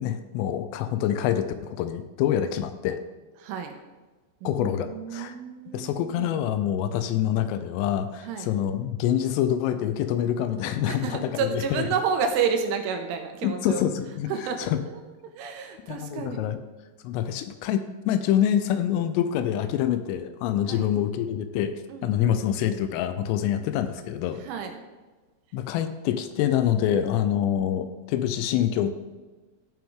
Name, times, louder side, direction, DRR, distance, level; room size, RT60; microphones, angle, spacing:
voice 1, 0.0-3.0 4.4-5.4 5.7-11.8 13.4-14.3 14.6-14.8 15.9-16.6 17.0-21.8 22.0-24.4 25.5-28.9, left 10 dB, 90° left, 10 dB, 3.2 m, -26 dB
voice 2, 3.4-3.7 4.4-6.4 8.2-8.5 10.9-13.8 14.3-14.7 14.9-15.0 15.4-16.5 20.7-20.9 21.9-22.6 24.4-24.8 26.9-27.0 27.3-27.7, right 6 dB, 85° right, 5 dB, 3.2 m, -30 dB
14.5 x 6.0 x 3.6 m, 1.3 s
omnidirectional pair, 5.7 m